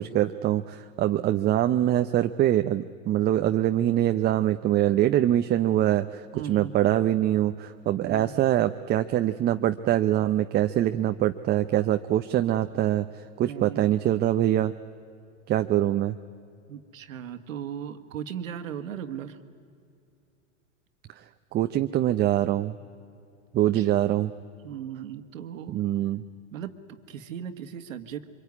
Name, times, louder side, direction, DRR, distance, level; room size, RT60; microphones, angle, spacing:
voice 1, 0.0-6.2 6.5-13.1 13.4-14.7 15.5-16.2 21.5-22.7 23.5-24.3 25.7-26.2, right 12 dB, 25° right, 9 dB, 0.6 m, -24 dB
voice 2, 6.3-6.7 8.0-8.3 13.4-13.9 16.7-19.4 23.7-23.9 24.6-25.8 26.5-28.3, right 9 dB, 85° right, 8 dB, 1.7 m, -37 dB
24.5 x 23.0 x 9.6 m, 2.4 s
hypercardioid pair, 115°, 39 cm